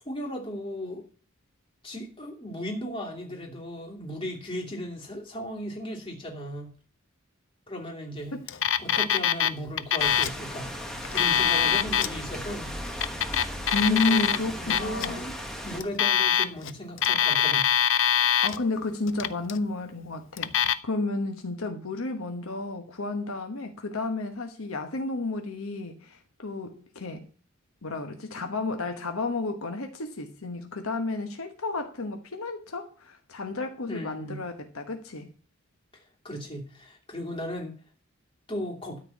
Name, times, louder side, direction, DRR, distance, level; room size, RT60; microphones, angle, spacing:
voice 1, 0.0-1.0 1.8-6.7 7.7-8.4 8.8-10.7 11.1-12.7 13.8-15.4 15.6-17.7 33.9-34.4 35.9-37.7 38.5-39.0, equal, 25° left, 2.8 m, -36 dB
Alarm, 8.5-9.5 9.8-10.4 11.0-12.1 12.9-14.4 14.7-15.1 15.8-16.7 17.0-18.6 19.1-19.6 20.4-20.7, left 9 dB, 60° left, 0.6 m, -23 dB
sound 1, 10.0-15.8, equal, ahead, 1.4 m, -37 dB
voice 2, 13.7-15.3 18.4-27.3 27.8-35.3, left 3 dB, 75° left, 1.2 m, -31 dB
13.0 x 4.6 x 8.4 m
head